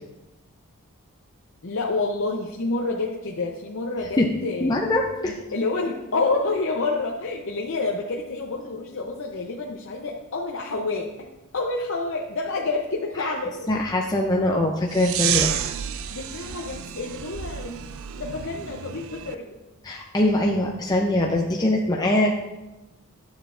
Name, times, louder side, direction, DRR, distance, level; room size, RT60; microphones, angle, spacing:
voice 1, 1.6-4.8 5.2-11.3 11.5-13.7 16.1-17.8 18.2-19.6, left 3 dB, 60° left, -1 dB, 0.7 m, -28 dB
voice 2, 4.6-5.3 13.2-13.3 13.7-15.5 19.8-22.3, left 1 dB, 15° left, 0 dB, 0.5 m, -22 dB
sound 1, 14.9-19.3, right 10 dB, 65° right, 0.4 m, -30 dB
11.0 x 7.2 x 2.5 m, 1.0 s
head